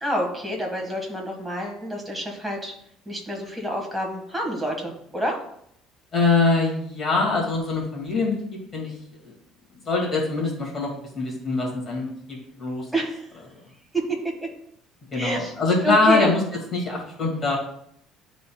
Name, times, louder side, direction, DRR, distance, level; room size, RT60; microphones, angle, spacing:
voice 1, 0.0-2.7 3.0-5.4 12.9-13.3 13.9-14.2 15.1-15.5 15.8-16.3, right 1 dB, 5° right, 0 dB, 1.7 m, -28 dB
voice 2, 6.1-8.3 8.7-8.9 9.8-10.9 11.2-12.9 15.1-16.4 16.7-17.6, left 3 dB, 30° left, -2 dB, 2.2 m, -23 dB
11.0 x 4.1 x 2.3 m, 0.71 s
cardioid pair, 135°, 0 cm